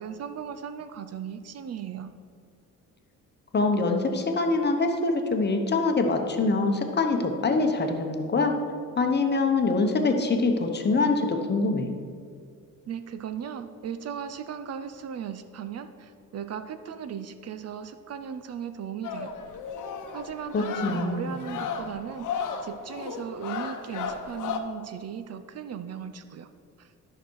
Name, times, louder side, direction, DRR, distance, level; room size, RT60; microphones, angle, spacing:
voice 1, 0.0-2.1 12.9-19.4 20.1-26.5 26.8-26.9, right 8 dB, 50° right, 10 dB, 0.5 m, -37 dB
voice 2, 3.5-8.5 9.0-11.9 20.5-21.3, left 3 dB, 30° left, 4 dB, 1.0 m, -24 dB
sound 1, 19.0-24.6, left 6 dB, 70° left, 0.9 m, -35 dB
12.0 x 5.9 x 4.6 m, 2.2 s
cardioid pair, 120°, 32 cm